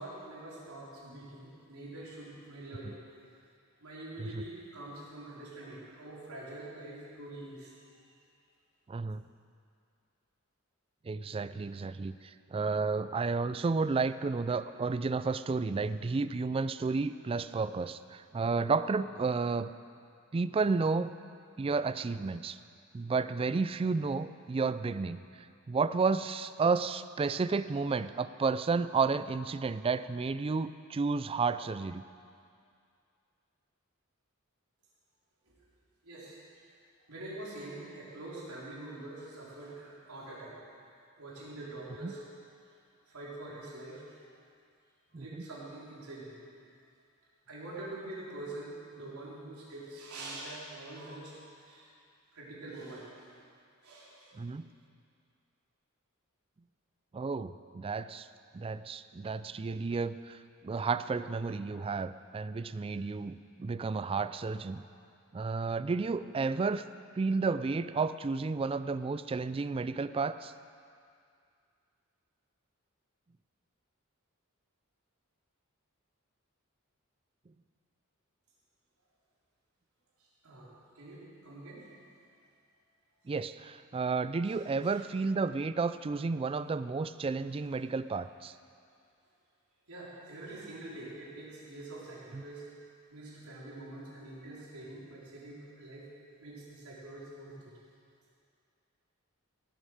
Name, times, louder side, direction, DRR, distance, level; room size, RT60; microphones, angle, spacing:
voice 1, 0.0-3.0 3.8-7.7 35.5-35.6 36.0-36.4 37.1-40.6 41.2-42.2 43.1-44.0 45.1-46.4 47.5-51.9 52.3-53.3 53.8-54.4 80.2-81.9 84.5-85.0 89.9-92.7 93.1-96.1 96.4-97.7, right 2 dB, 85° right, -6 dB, 4.0 m, -45 dB
voice 2, 8.9-9.2 11.1-12.2 12.5-19.7 20.3-21.1 21.6-22.6 22.9-25.2 25.7-32.0 42.0-42.1 45.1-45.4 54.4-54.7 57.1-58.3 58.5-60.4 60.6-64.8 65.3-66.8 67.2-70.5 83.3-88.5 92.3-92.4, right 4 dB, 25° right, 14 dB, 0.3 m, -31 dB
16.5 x 9.9 x 6.4 m, 2.3 s
head